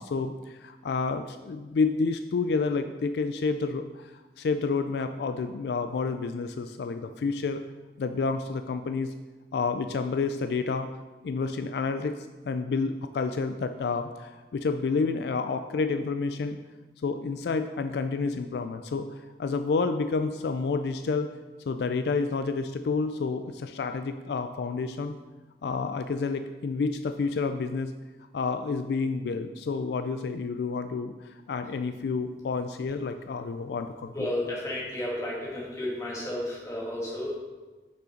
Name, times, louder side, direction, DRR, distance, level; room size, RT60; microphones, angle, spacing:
voice 1, 0.0-7.6 8.0-9.1 9.5-10.9 11.2-16.6 17.0-21.3 21.7-25.1 25.6-27.9 28.3-34.3, left 4 dB, 70° left, 9 dB, 0.3 m, -29 dB
voice 2, 34.1-37.4, left 1 dB, 20° left, -4 dB, 1.6 m, -32 dB
6.2 x 5.5 x 5.0 m, 1.2 s
head